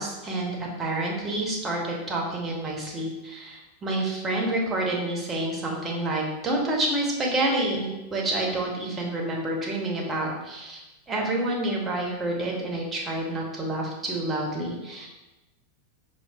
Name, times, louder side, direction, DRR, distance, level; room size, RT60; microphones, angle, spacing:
voice 1, 0.0-15.1, right 1 dB, 20° right, -1 dB, 0.7 m, -28 dB
4.3 x 2.3 x 2.3 m, 1.0 s
figure-of-eight pair, 90°, 0 cm